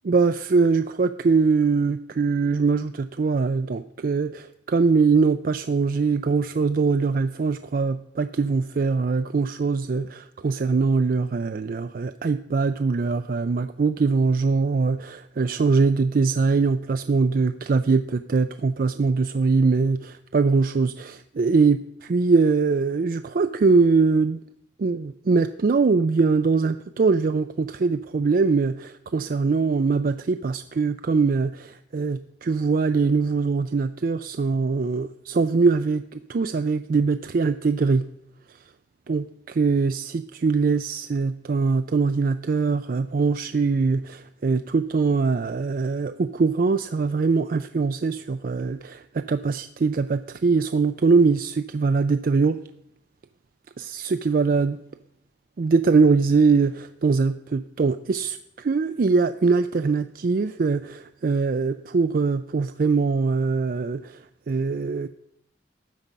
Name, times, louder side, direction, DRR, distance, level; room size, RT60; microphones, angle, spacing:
voice 1, 0.0-24.4 24.8-38.0 39.1-52.6 53.8-54.8 55.6-65.1, right 4 dB, 50° right, 10 dB, 0.4 m, -22 dB
13.0 x 8.1 x 5.3 m, 0.79 s
head